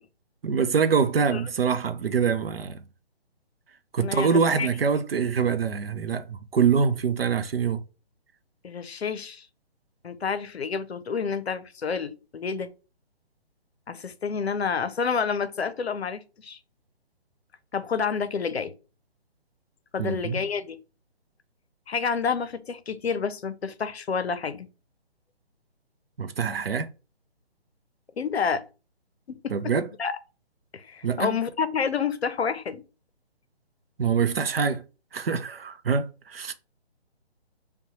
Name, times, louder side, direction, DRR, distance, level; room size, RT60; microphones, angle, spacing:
voice 1, 0.4-2.8 3.9-7.8 20.0-20.4 26.2-26.9 29.5-29.9 31.0-31.3 34.0-34.8 35.1-36.5, right 6 dB, 65° right, 0.5 m, -24 dB
voice 2, 4.0-4.7 8.6-9.5 10.0-12.7 13.9-16.6 17.7-18.7 19.9-20.8 21.9-24.7 28.2-28.6 29.3-29.5 30.0-30.1 30.7-32.8, left 6 dB, 70° left, 0.6 m, -29 dB
5.4 x 2.2 x 2.9 m
figure-of-eight pair, 140°, 32 cm